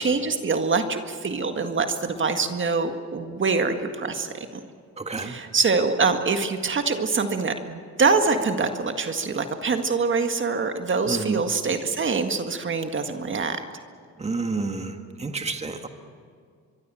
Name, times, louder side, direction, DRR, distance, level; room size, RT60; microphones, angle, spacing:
voice 1, 0.0-4.3 5.2-13.6, right 4 dB, 40° right, 6 dB, 1.8 m, -24 dB
voice 2, 5.0-5.4 11.1-11.4 14.2-15.9, right 3 dB, 20° right, 5 dB, 1.8 m, -29 dB
24.0 x 23.0 x 7.7 m, 2.1 s
cardioid pair, 90°, 30 cm